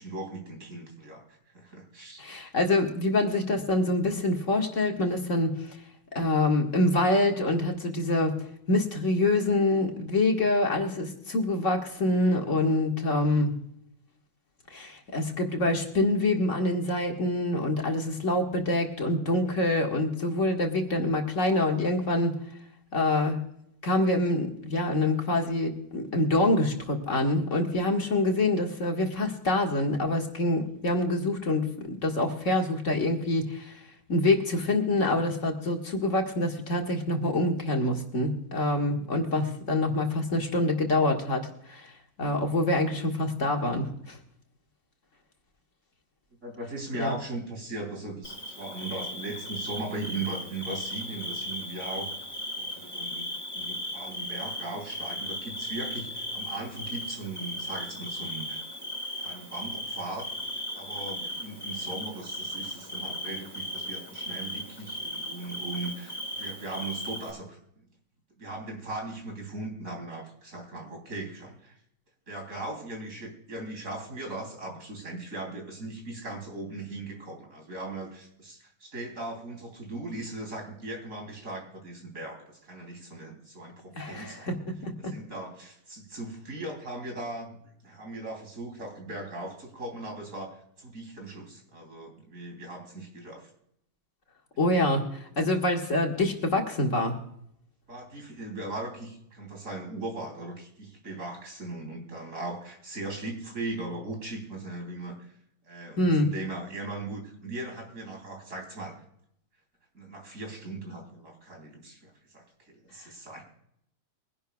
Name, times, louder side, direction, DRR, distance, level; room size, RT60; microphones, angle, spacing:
voice 1, 0.0-2.2 46.4-52.2 52.6-53.3 53.5-58.6 59.2-60.3 60.7-67.9 68.4-71.8 72.3-84.7 85.0-87.6 87.8-93.5 97.9-105.3 105.6-109.0 109.9-113.4, right 2 dB, 65° right, 2 dB, 3.7 m, -38 dB
voice 2, 2.2-5.8 6.2-8.4 8.7-13.5 14.7-22.4 22.9-23.4 23.8-33.8 34.1-41.9 42.2-44.2 46.9-47.2 84.0-84.5 84.8-85.1 94.6-97.2 106.0-106.3, left 2 dB, 55° left, 2 dB, 2.1 m, -26 dB
Bird / Cricket, 48.2-67.3, left 1 dB, 35° left, 3.2 m, -37 dB
23.0 x 11.0 x 2.3 m, 0.74 s
omnidirectional pair, 1.5 m